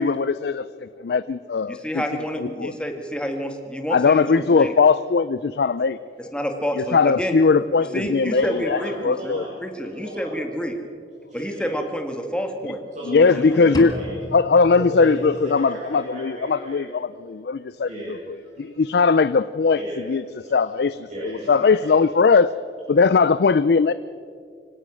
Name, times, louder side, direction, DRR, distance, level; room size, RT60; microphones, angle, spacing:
voice 1, 0.0-2.0 2.6-2.7 3.9-6.0 6.9-8.8 9.0-9.4 13.1-13.9 14.3-17.9 18.6-19.8 20.1-20.2 20.5-20.9 21.5-22.5 22.9-23.9, left 4 dB, 65° left, 15 dB, 0.4 m, -19 dB
voice 2, 1.7-4.7 6.2-7.4 7.9-9.4 9.6-10.8 11.3-12.9 13.1-13.7, equal, 5° left, 4 dB, 1.9 m, -28 dB
voice 3, 8.3-10.3 11.3-11.8 12.9-14.1 14.7-16.8 17.9-18.9 19.7-20.1 21.1-22.0, right 1 dB, 45° right, -8 dB, 7.1 m, -35 dB
sound 1, 13.7-15.7, equal, 25° left, 1.7 m, -34 dB
25.0 x 17.5 x 6.3 m, 2.3 s
head